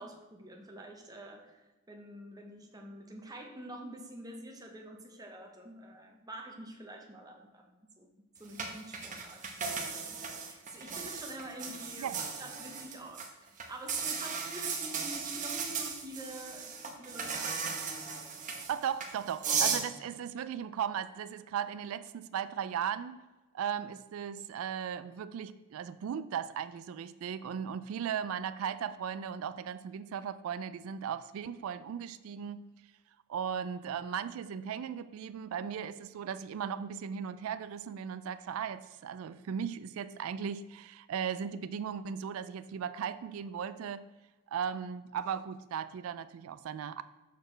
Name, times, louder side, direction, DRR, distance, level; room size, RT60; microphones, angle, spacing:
voice 1, 0.0-10.2 10.5-17.7, right 1 dB, 15° right, 1 dB, 0.9 m, -47 dB
sound 1, 8.6-13.3 13.6-19.8, right 5 dB, 35° right, 0.9 m, -36 dB
voice 2, 12.0-12.3 18.7-23.2 23.5-32.6 33.3-44.0 44.5-47.0, right 8 dB, 70° right, 13 dB, 0.3 m, -37 dB
6.8 x 6.4 x 3.3 m, 1.1 s
head